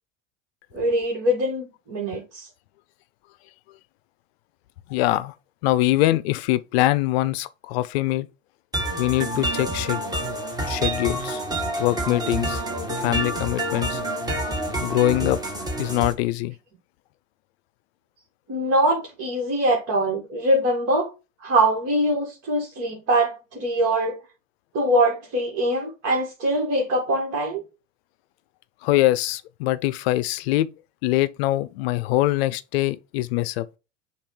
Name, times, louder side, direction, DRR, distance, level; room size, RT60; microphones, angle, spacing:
voice 1, 0.7-2.5 18.5-21.1 21.4-24.2 24.7-27.6, right 1 dB, 40° right, 2.0 m, -23 dB
voice 2, 4.9-5.3 5.6-8.3 9.0-10.0 10.7-11.4 11.8-12.6 13.0-14.0 14.8-15.4 15.8-16.5 28.8-30.7 31.0-33.6, left 16 dB, 55° left, 0.7 m, -23 dB
sound 1, 8.7-16.1, right 1 dB, 10° right, 1.5 m, -28 dB
6.9 x 2.7 x 5.1 m
figure-of-eight pair, 85°, 38 cm